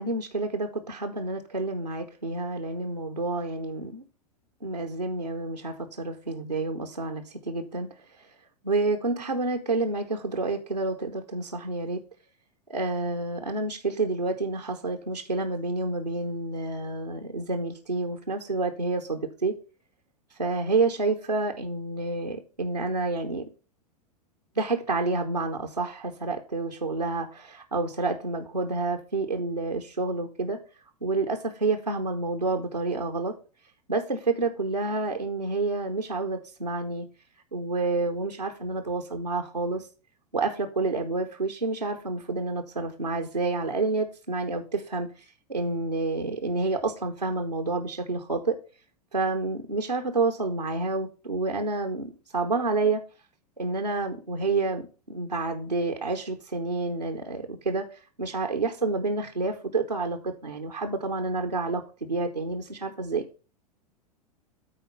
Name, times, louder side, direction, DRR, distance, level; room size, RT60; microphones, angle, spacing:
voice 1, 0.0-4.0 4.6-7.9 8.6-12.0 12.7-19.5 20.4-23.4 24.6-30.6 31.0-33.3 33.9-37.1 37.5-39.9 40.3-45.1 45.5-48.6 49.1-53.0 53.6-57.9 58.2-63.2, right 3 dB, 85° right, 3 dB, 0.9 m, -29 dB
9.0 x 4.3 x 5.3 m, 0.35 s
figure-of-eight pair, 95°, 20 cm